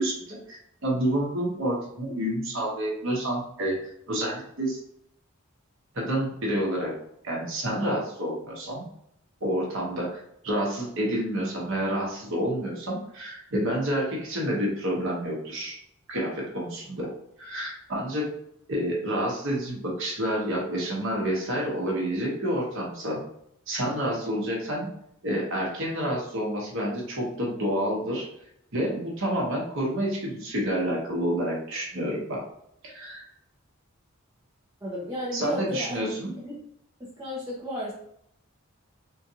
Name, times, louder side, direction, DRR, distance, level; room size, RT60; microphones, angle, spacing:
voice 1, 0.0-3.8 4.1-4.8 5.9-6.9 7.2-8.9 9.4-15.8 16.1-17.1 17.4-18.3 18.7-23.2 23.7-24.9 25.2-28.3 28.7-32.4 32.8-33.3 35.3-36.3, right 1 dB, 65° right, -3 dB, 1.0 m, -29 dB
voice 2, 34.8-36.0 36.4-36.6 37.0-37.9, left 1 dB, 15° right, -7 dB, 0.7 m, -33 dB
3.7 x 2.4 x 2.8 m, 0.73 s
head